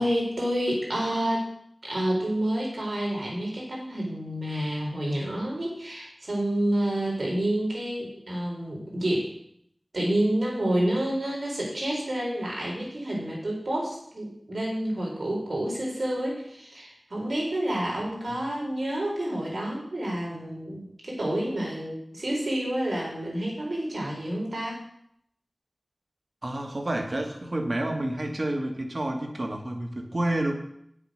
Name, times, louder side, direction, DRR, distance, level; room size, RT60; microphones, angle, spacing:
voice 1, 0.0-1.5 1.8-9.3 9.9-24.8, right 1 dB, 75° right, -3 dB, 4.6 m, -29 dB
voice 2, 26.4-30.5, right 1 dB, 50° right, 3 dB, 1.9 m, -29 dB
8.5 x 7.9 x 6.5 m, 0.69 s
wide cardioid pair, 45°, 0 cm